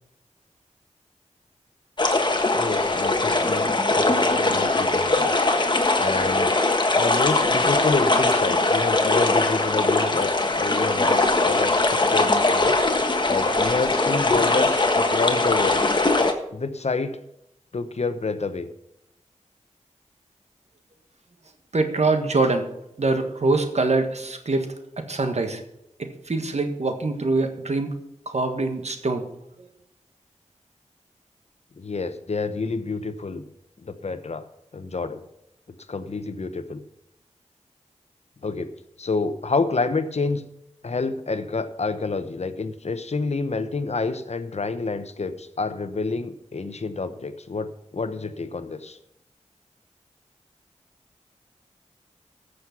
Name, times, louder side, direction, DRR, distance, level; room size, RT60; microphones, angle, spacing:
sound 1, 2.0-16.3, left 2 dB, 40° left, 1.4 m, -21 dB
voice 1, 2.6-6.6 7.0-12.7 13.3-15.8 16.5-17.2 17.7-18.7 31.8-33.5 33.8-34.4 34.7-35.2 35.9-36.8 38.4-38.7 39.0-40.4 40.8-49.0, left 4 dB, 60° left, 11 dB, 0.9 m, -28 dB
voice 2, 21.7-22.7 23.0-24.7 25.1-25.6 26.0-27.9 28.3-29.2, right 3 dB, 60° right, 6 dB, 1.5 m, -24 dB
14.0 x 6.5 x 5.9 m, 0.81 s
wide cardioid pair, 60°, 12 cm